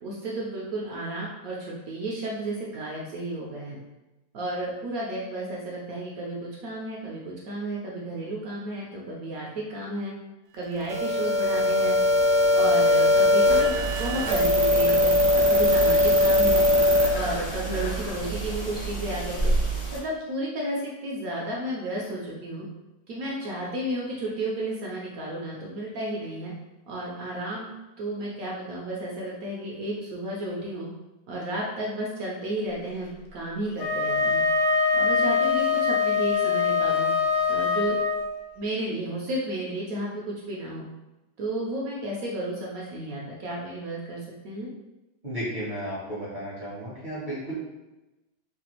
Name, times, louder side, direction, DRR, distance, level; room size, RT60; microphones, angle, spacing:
voice 1, 0.0-3.8 4.3-10.1 10.5-12.0 12.5-16.6 17.1-19.5 19.9-22.6 23.1-26.5 26.9-27.7 28.0-30.9 31.3-34.4 34.9-37.1 37.5-38.0 38.6-40.8 41.4-44.7, right 1 dB, 70° right, -3 dB, 0.9 m, -32 dB
sound 1, 10.9-17.1, left 1 dB, 90° right, 0.6 m, -20 dB
sound 2, 13.4-20.0, right 3 dB, 40° left, 0.7 m, -30 dB
Wind instrument woodwind instrument, 33.7-38.4, left 5 dB, 85° left, 1.2 m, -23 dB
voice 2, 45.2-47.5, equal, 40° right, -8 dB, 0.7 m, -33 dB
3.2 x 2.3 x 2.9 m, 1.0 s
omnidirectional pair, 1.9 m